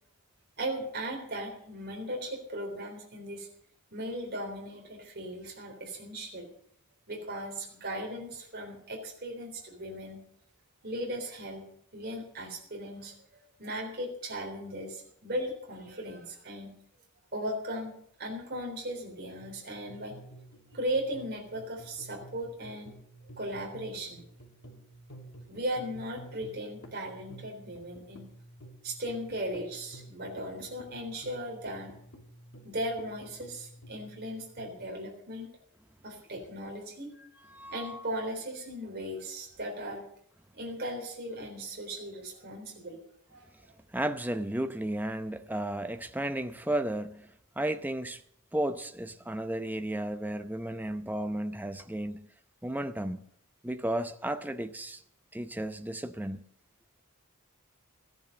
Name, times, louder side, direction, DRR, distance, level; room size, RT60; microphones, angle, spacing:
voice 1, 0.6-3.5 3.9-6.5 7.1-10.2 10.8-11.7 11.9-16.8 17.3-20.2 20.7-22.9 23.4-24.2 25.5-28.3 28.8-31.9 32.6-35.5 36.0-37.1 37.7-40.1 40.5-43.0 43.3-43.5, right 1 dB, 45° right, 3.7 m, -37 dB
sound 1, 19.4-34.8, right 1 dB, 70° left, 2.7 m, -51 dB
voice 2, 37.5-38.0 43.9-48.2 48.5-52.3 52.6-53.2 53.6-55.0 55.3-56.4, right 1 dB, 10° right, 0.7 m, -33 dB
15.0 x 10.5 x 6.6 m
head